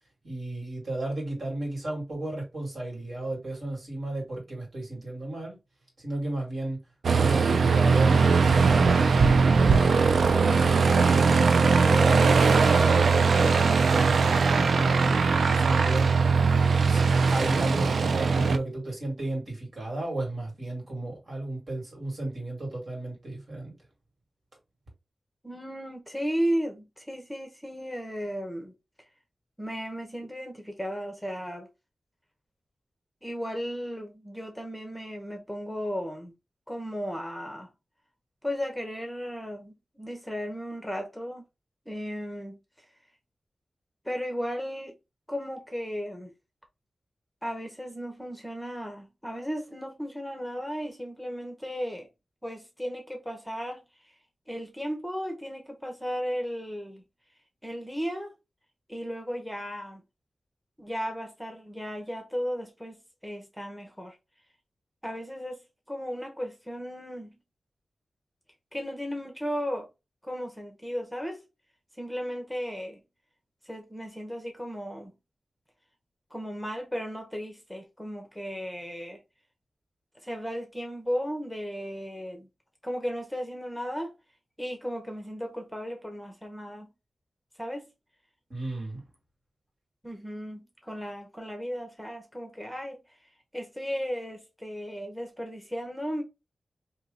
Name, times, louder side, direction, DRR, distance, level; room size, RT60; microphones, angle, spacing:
voice 1, 0.2-5.6 6.0-6.8 7.1-9.7 10.3-12.9 13.4-15.2 15.5-16.1 16.9-23.7 88.5-89.0, right 2 dB, 60° right, 2.0 m, -34 dB
Aircraft, 7.0-18.6, right 4 dB, 85° right, 0.3 m, -21 dB
voice 2, 25.4-28.7 29.6-31.7 33.2-36.3 36.7-37.7 38.4-41.4 41.9-42.6 44.0-44.9 45.3-46.3 47.4-52.1 52.4-54.1 54.5-57.0 57.6-58.3 58.9-60.0 60.8-64.2 65.0-65.6 65.9-67.3 68.7-69.9 70.2-71.4 72.0-73.0 73.6-75.1 76.3-79.2 80.2-82.5 82.8-84.1 84.6-86.9 87.6-87.9 90.0-93.0 93.5-96.2, equal, ahead, 0.8 m, -35 dB
2.9 x 2.7 x 3.7 m
wide cardioid pair, 115°, 0 cm